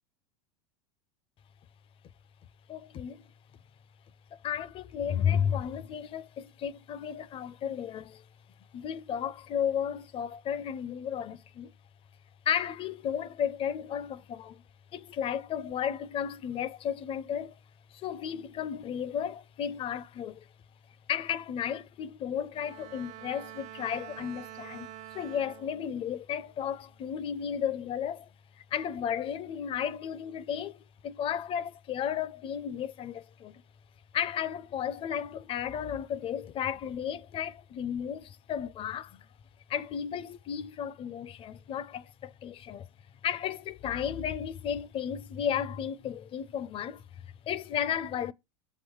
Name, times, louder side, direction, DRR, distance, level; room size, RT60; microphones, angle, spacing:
voice 1, 2.7-3.2 4.3-8.2 8.7-11.7 12.5-14.6 14.9-17.5 17.9-20.5 21.1-24.9 25.1-28.3 28.6-33.6 34.1-39.3 39.7-42.9 43.2-48.3, left 8 dB, 35° left, 0.6 m, -33 dB
Bowed string instrument, 22.5-26.1 26.6-27.0, right 14 dB, 45° right, 0.7 m, -47 dB
7.5 x 3.7 x 6.3 m
supercardioid pair, 115°, 16 cm